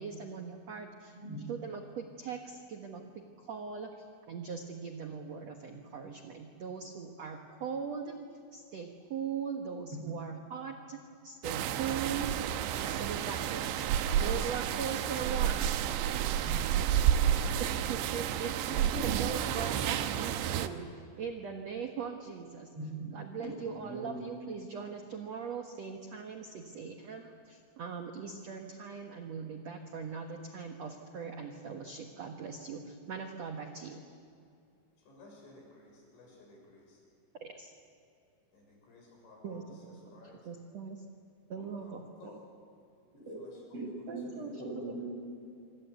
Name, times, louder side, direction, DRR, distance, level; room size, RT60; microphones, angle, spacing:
voice 1, 0.0-8.2 8.5-12.3 12.8-15.7 17.6-22.7 23.1-34.0 37.4-37.7 39.4-40.1 40.4-41.0 41.5-42.4 44.1-44.6, right 6 dB, 65° right, 4 dB, 1.7 m, -40 dB
sound 1, 11.4-20.7, right 10 dB, 90° right, 3.3 m, -30 dB
voice 2, 18.7-19.3 22.8-23.2 23.5-24.2 41.6-41.7 43.7-45.1, right 2 dB, 30° right, -1 dB, 7.9 m, -41 dB
voice 3, 35.0-37.0 38.5-39.6 39.9-40.5 41.8-42.4 43.4-43.5 44.3-44.5, left 3 dB, 80° left, 0 dB, 9.1 m, -56 dB
26.5 x 25.5 x 8.3 m, 2.5 s
omnidirectional pair, 5.1 m